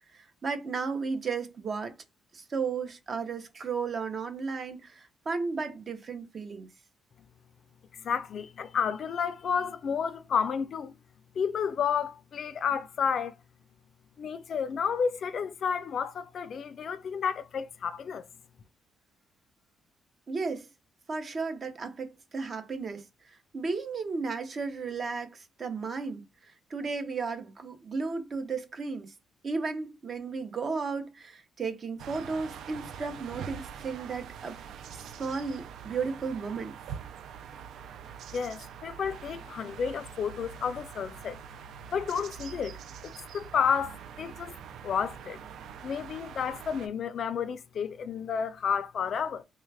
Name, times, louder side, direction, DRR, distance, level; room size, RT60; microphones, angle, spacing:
voice 1, 0.1-1.9 2.3-6.7 20.3-20.7 21.1-26.2 26.5-29.1 29.4-34.6 35.2-36.7, right 4 dB, 45° right, 0.7 m, -34 dB
voice 2, 7.9-10.9 11.4-13.4 14.2-18.3 38.3-41.4 41.9-44.6 44.8-45.4 45.8-49.4, left 7 dB, 55° left, 0.4 m, -31 dB
sound 1, 32.0-46.9, right 8 dB, 75° right, 0.3 m, -44 dB
3.2 x 2.3 x 3.3 m
cardioid pair, 90°, 0 cm